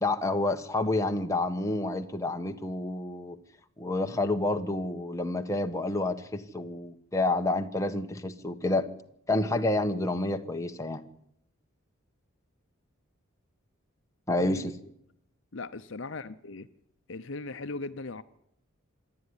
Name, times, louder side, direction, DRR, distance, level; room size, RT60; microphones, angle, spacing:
voice 1, 0.0-3.4 3.8-8.9 9.3-11.0 14.3-14.7, left 2 dB, 15° left, 5 dB, 1.2 m, -29 dB
voice 2, 15.5-16.7 17.1-18.2, left 3 dB, 60° left, 12 dB, 0.7 m, -38 dB
26.5 x 11.0 x 9.9 m, 0.75 s
head